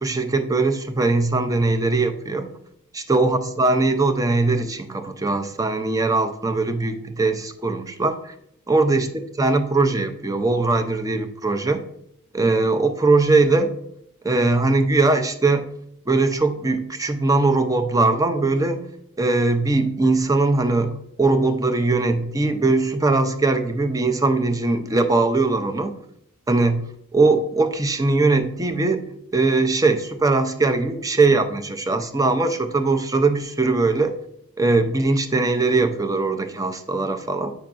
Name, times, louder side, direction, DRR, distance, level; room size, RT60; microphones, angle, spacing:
voice 1, 0.0-2.5 2.9-8.3 8.7-11.8 12.3-13.7 14.2-15.7 16.1-18.8 19.2-25.9 26.5-34.1 34.6-37.5, right 3 dB, 15° right, 7 dB, 0.5 m, -20 dB
8.3 x 5.7 x 2.5 m, 0.73 s
head